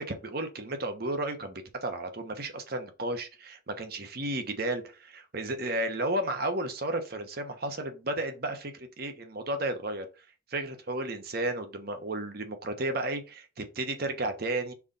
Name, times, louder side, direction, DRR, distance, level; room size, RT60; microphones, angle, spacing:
voice 1, 0.0-10.1 10.5-14.7, right 1 dB, 50° right, 1.1 m, -33 dB
4.8 x 3.7 x 5.4 m
head